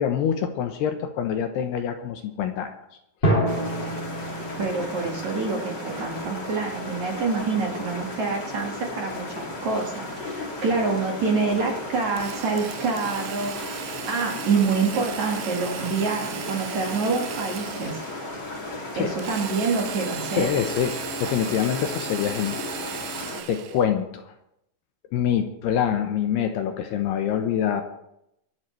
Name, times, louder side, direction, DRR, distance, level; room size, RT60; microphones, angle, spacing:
voice 1, 0.0-2.7 18.9-19.2 20.3-20.9 21.2-23.1 23.5-24.3 25.1-27.8, left 9 dB, 75° left, 6 dB, 2.7 m, -25 dB
sound 1, 3.2-6.7, right 1 dB, 50° left, 0.6 m, -28 dB
sound 2, 3.5-23.4, left 2 dB, 30° left, 2.5 m, -35 dB
voice 2, 4.6-13.8 14.1-18.0 19.0-20.5, right 4 dB, 50° right, 0 dB, 2.5 m, -26 dB
Drill, 12.2-18.2 19.2-23.9, right 10 dB, 80° right, 3.1 m, -37 dB
24.0 x 11.0 x 3.3 m, 0.79 s
omnidirectional pair, 5.3 m